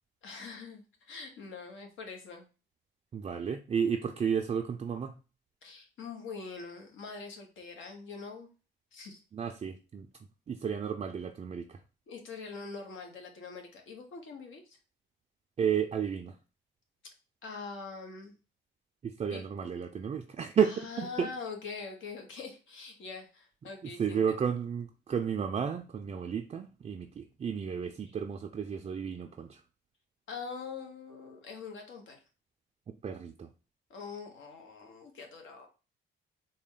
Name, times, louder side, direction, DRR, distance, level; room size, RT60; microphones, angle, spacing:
voice 1, 0.2-2.5 5.6-8.5 8.9-9.2 12.1-14.8 17.4-18.3 19.2-19.4 20.6-24.4 28.1-28.2 30.3-32.2 33.9-35.7, left 4 dB, 75° left, 1.0 m, -43 dB
voice 2, 3.1-5.1 9.3-10.1 10.5-11.8 15.6-16.4 19.0-21.3 24.0-29.6 33.0-33.5, right 7 dB, 30° right, 0.4 m, -32 dB
4.0 x 2.2 x 3.6 m
cardioid pair, 90°, 20 cm